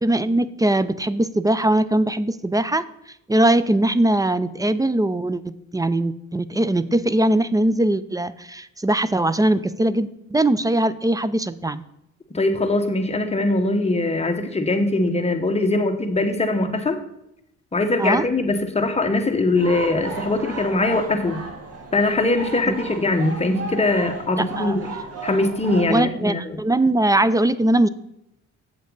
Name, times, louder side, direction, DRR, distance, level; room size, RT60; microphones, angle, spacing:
voice 1, 0.0-2.8 3.3-11.8 18.0-18.2 22.7-22.8 24.4-24.8 25.9-27.9, right 1 dB, 10° right, 15 dB, 0.4 m, -21 dB
voice 2, 12.3-17.0 17.7-21.4 21.9-24.9 25.2-26.6, left 2 dB, 20° left, 6 dB, 1.1 m, -21 dB
sound 1, 19.6-26.0, right 4 dB, 55° right, 1.9 m, -34 dB
8.2 x 7.5 x 3.9 m, 0.82 s
cardioid pair, 90°, 30 cm